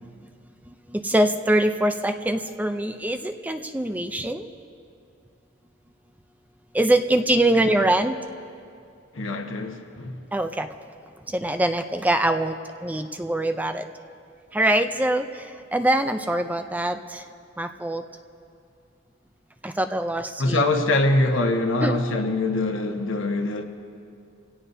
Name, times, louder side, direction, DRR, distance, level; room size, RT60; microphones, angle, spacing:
voice 1, 0.9-4.5 6.7-8.2 10.3-10.7 11.3-13.8 14.5-15.3 15.7-17.2 17.6-18.0 19.6-20.6 21.8-21.9, right 1 dB, 10° right, 0.5 m, -23 dB
voice 2, 9.1-10.2 20.4-23.6, left 2 dB, 85° left, 1.3 m, -23 dB
26.0 x 17.5 x 2.7 m
head